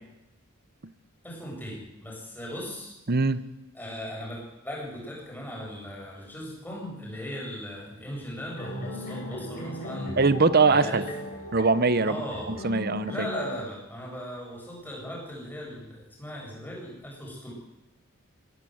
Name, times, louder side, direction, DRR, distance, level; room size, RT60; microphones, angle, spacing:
voice 1, 1.2-3.0 3.7-10.2 10.7-11.0 12.0-12.6 13.1-17.5, equal, 10° left, -2 dB, 7.9 m, -38 dB
voice 2, 3.1-3.4 10.2-11.0 11.5-12.2 12.5-13.3, right 4 dB, 45° right, 14 dB, 1.0 m, -22 dB
sound 1, 8.6-13.6, left 1 dB, 40° left, 7.1 m, -37 dB
22.0 x 17.0 x 8.0 m, 0.94 s
head